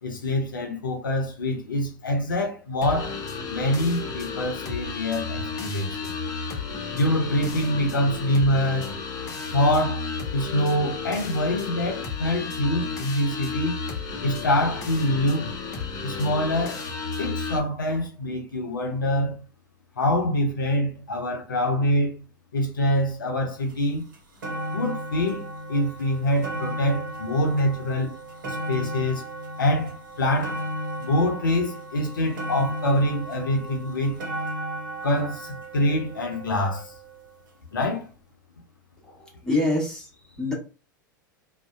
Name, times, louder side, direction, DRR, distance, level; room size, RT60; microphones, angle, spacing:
voice 1, 0.0-3.2 3.5-6.1 6.9-8.9 9.5-13.8 14.2-15.6 16.0-16.8 17.2-19.4 20.0-22.1 22.5-24.1 24.7-28.1 28.4-29.2 29.6-30.6 31.0-34.2 35.0-36.9 37.7-38.1, left 1 dB, 80° left, 0.6 m, -25 dB
sound 1, 2.8-17.6, left 4 dB, 35° left, 0.6 m, -33 dB
sound 2, 23.7-23.8 24.1-37.3 38.1-38.2, right 1 dB, 70° right, 0.8 m, -35 dB
voice 2, 39.0-40.5, left 2 dB, 5° left, 1.0 m, -27 dB
2.5 x 2.1 x 2.3 m
figure-of-eight pair, 90°, 11 cm